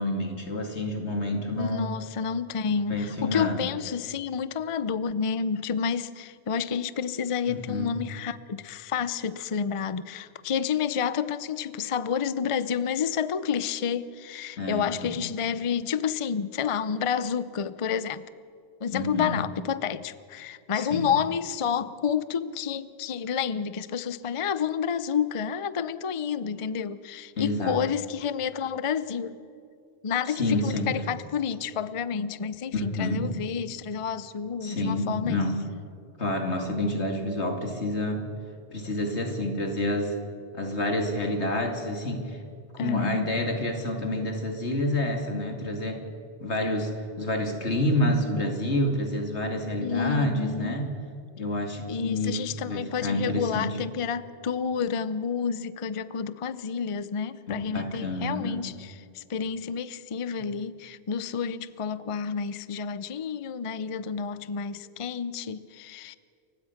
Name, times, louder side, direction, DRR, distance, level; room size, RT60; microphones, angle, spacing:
voice 1, 0.0-1.9 2.6-3.7 7.5-8.0 14.6-15.2 18.9-19.3 20.7-21.1 27.3-27.8 30.3-30.9 32.7-33.2 34.6-35.6 36.2-38.3 38.7-40.1 40.5-42.4 42.7-46.0 46.4-50.9 51.4-53.8 57.7-58.6, left 1 dB, 85° left, 4 dB, 2.8 m, -28 dB
voice 2, 1.6-18.2 18.8-29.4 30.0-35.4 42.8-43.3 49.8-50.8 51.9-66.2, left 7 dB, 40° left, 15 dB, 0.6 m, -30 dB
29.0 x 16.0 x 5.8 m, 2.4 s
omnidirectional pair, 1.1 m